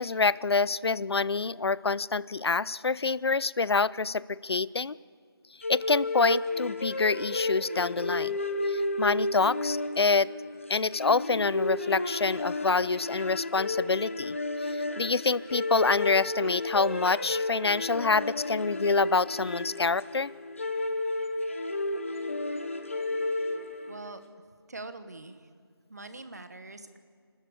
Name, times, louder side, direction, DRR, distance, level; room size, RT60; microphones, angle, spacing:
voice 1, 0.0-5.0 5.7-8.4 8.7-10.3 10.7-20.3, left 4 dB, 75° left, 21 dB, 0.6 m, -27 dB
sound 1, 5.6-24.1, left 2 dB, 30° left, 0.9 m, -32 dB
voice 2, 23.9-24.2 24.7-25.5 25.9-27.0, right 3 dB, 40° right, 10 dB, 1.2 m, -43 dB
29.0 x 13.0 x 8.4 m, 2.1 s
figure-of-eight pair, 180°, 13 cm